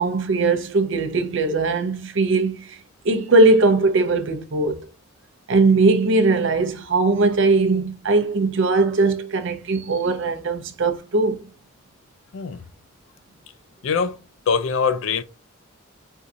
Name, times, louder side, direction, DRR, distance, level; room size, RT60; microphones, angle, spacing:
voice 1, 0.0-2.8 3.0-4.8 5.5-11.4, right 3 dB, 60° right, 0.6 m, -19 dB
voice 2, 13.8-14.2 14.5-15.2, left 6 dB, 65° left, 0.4 m, -22 dB
4.4 x 2.6 x 2.4 m
head